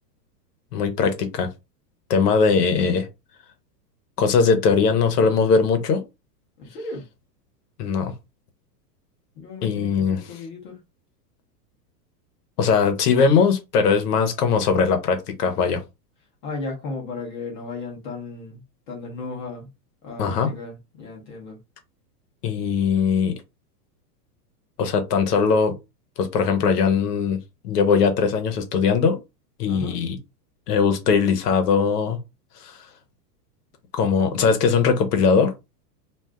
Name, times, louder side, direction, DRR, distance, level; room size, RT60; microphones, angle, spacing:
voice 1, 0.7-1.5 2.1-3.1 4.2-6.0 7.8-8.1 9.6-10.2 12.6-15.8 20.2-20.6 22.4-23.4 24.8-25.8 26.2-29.2 29.6-30.2 30.7-32.2 32.6-32.8 33.9-35.5, left 5 dB, 70° left, 0.9 m, -20 dB
voice 2, 2.2-2.6 6.6-7.0 9.4-10.8 16.4-19.7 20.0-21.6 29.7-30.0, left 3 dB, 30° left, 0.7 m, -35 dB
2.5 x 2.4 x 3.4 m
supercardioid pair, 175°, 49 cm